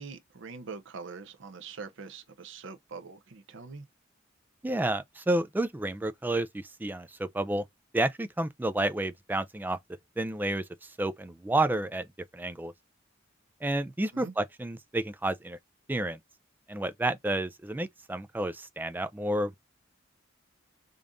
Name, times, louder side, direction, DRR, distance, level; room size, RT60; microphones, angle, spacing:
voice 1, 0.0-3.8 14.1-14.3, right 4 dB, 65° right, 0.6 m, -43 dB
voice 2, 4.6-7.6 7.9-9.8 10.2-12.1 12.3-12.7 13.6-15.6 15.9-16.2 16.7-19.5, right 1 dB, 10° right, 0.3 m, -30 dB
5.1 x 2.4 x 2.5 m
head